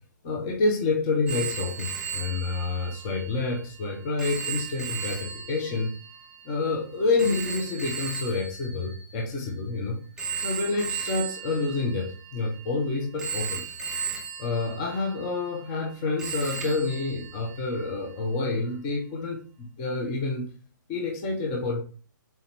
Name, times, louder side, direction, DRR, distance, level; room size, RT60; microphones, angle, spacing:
voice 1, 0.2-5.9 6.4-10.0 10.4-13.6 14.4-20.5 20.9-21.8, left 3 dB, 25° left, -1 dB, 0.8 m, -28 dB
Telephone, 1.3-9.6 10.2-12.7 13.2-15.9 16.2-17.9, right 6 dB, 5° right, 0.5 m, -36 dB
4.3 x 3.5 x 2.9 m, 0.40 s
hypercardioid pair, 160°, 11 cm